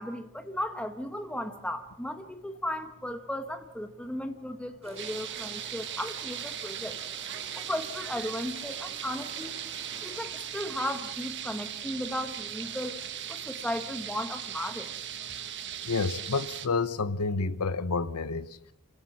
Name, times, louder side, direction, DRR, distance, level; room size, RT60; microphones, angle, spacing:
voice 1, 0.0-7.0 7.5-9.6 10.0-13.0 13.3-14.9, left 1 dB, 5° left, 1.3 m, -35 dB
sound 1, 4.8-10.3, right 2 dB, 30° right, 4.6 m, -51 dB
sound 2, 5.0-16.7, right 10 dB, 55° right, 1.3 m, -38 dB
voice 2, 15.9-18.5, left 4 dB, 90° left, 0.9 m, -29 dB
27.5 x 17.5 x 5.9 m
head